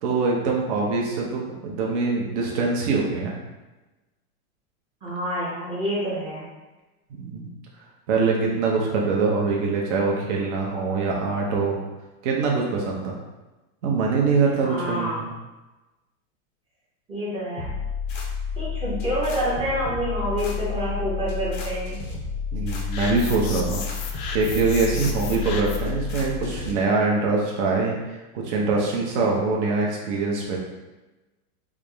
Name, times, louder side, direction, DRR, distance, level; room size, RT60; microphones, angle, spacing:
voice 1, 0.0-3.4 7.1-7.5 8.1-11.8 12.2-13.1 13.8-15.3 22.5-30.6, right 4 dB, 50° right, -2 dB, 0.7 m, -24 dB
voice 2, 5.0-6.5 14.6-15.3 17.1-17.7 18.6-22.0, right 1 dB, 10° right, -7 dB, 0.6 m, -28 dB
sound 1, 17.6-26.7, left 5 dB, 35° left, 0.5 m, -30 dB
sound 2, 22.9-26.0, left 5 dB, 85° left, 0.7 m, -35 dB
3.5 x 2.0 x 3.3 m, 1.1 s
supercardioid pair, 150°, 44 cm